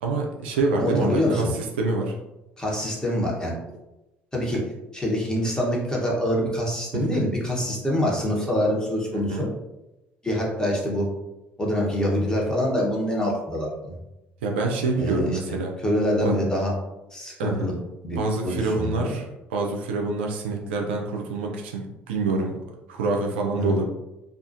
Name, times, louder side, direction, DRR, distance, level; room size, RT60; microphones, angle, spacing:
voice 1, 0.0-1.5 1.8-2.1 6.9-7.3 9.1-9.5 14.4-15.7 16.2-16.4 17.4-17.8 18.2-22.5 22.9-23.9, right 3 dB, 80° right, 1 dB, 0.3 m, -26 dB
voice 2, 0.8-1.5 2.6-3.6 4.3-4.6 4.9-9.5 10.2-11.1 11.6-13.9 15.0-15.4 15.8-16.7 17.1-17.7 18.0-18.2 18.4-19.2 23.6-23.8, equal, 15° left, -3 dB, 1.0 m, -25 dB
2.4 x 2.3 x 2.6 m, 0.95 s
hypercardioid pair, 55°, 6 cm